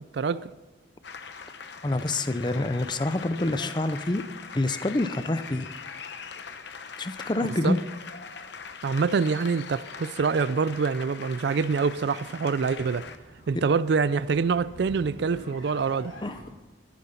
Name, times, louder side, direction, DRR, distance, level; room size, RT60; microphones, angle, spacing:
voice 1, 0.1-0.5 7.6-7.8 8.8-13.1 13.5-16.1, right 5 dB, 60° right, 0.4 m, -25 dB
sound 1, 1.0-13.2, left 5 dB, 65° left, 0.9 m, -42 dB
voice 2, 1.8-4.2 4.5-5.7 7.0-7.8 16.2-16.3, left 2 dB, 25° left, 0.6 m, -27 dB
sound 2, 11.4-16.4, equal, 90° left, 4.4 m, -48 dB
13.5 x 10.5 x 5.7 m
head